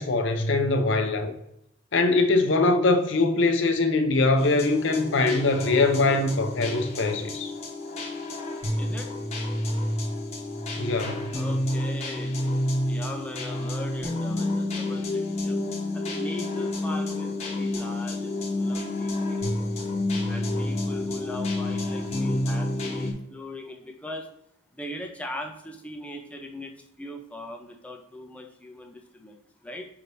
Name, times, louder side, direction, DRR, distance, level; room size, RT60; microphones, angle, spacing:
voice 1, 0.0-1.3 1.9-7.5 10.8-11.4, left 3 dB, 65° left, 0.6 m, -22 dB
sound 1, 4.4-23.1, left 1 dB, 30° left, 1.0 m, -29 dB
voice 2, 8.8-9.1 11.3-12.5 12.8-15.6 15.9-19.5 20.3-24.3 24.7-29.9, left 1 dB, 5° left, 0.6 m, -39 dB
5.7 x 3.3 x 2.6 m
head